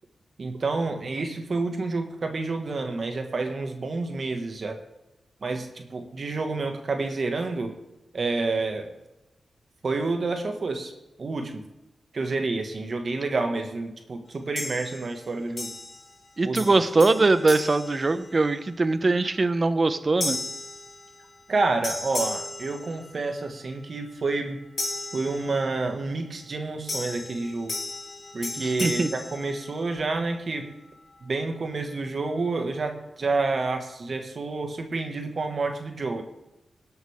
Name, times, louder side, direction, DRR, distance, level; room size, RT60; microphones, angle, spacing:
voice 1, 0.4-4.8 5.4-7.7 8.1-8.9 9.8-10.9 11.2-11.6 12.1-15.7 16.4-16.8 21.5-24.6 25.1-27.8 28.3-30.7 31.2-36.2, right 3 dB, 60° right, 4 dB, 1.8 m, -29 dB
sound 1, 14.5-15.2 15.6-16.3 16.5-18.7 19.2-19.5 20.2-21.5 21.8-23.5 24.8-25.9 26.9-30.1, left 2 dB, 60° left, 4.3 m, -35 dB
voice 2, 16.4-20.4 28.6-29.1, right 3 dB, 45° right, 12 dB, 0.9 m, -22 dB
19.5 x 8.1 x 3.6 m, 0.95 s
cardioid pair, 55°, 0 cm